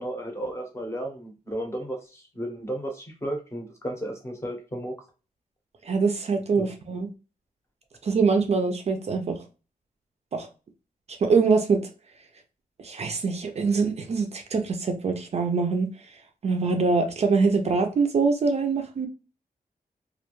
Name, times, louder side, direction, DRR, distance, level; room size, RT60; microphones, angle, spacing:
voice 1, 0.0-4.9 6.6-6.7, right 1 dB, 20° left, 0.7 m, -33 dB
voice 2, 5.8-7.1 8.0-9.4 10.3-10.5 11.2-11.8 12.8-15.9 16.4-19.1, right 4 dB, 45° right, 0.4 m, -24 dB
2.3 x 2.2 x 2.9 m
wide cardioid pair, 170°, 15 cm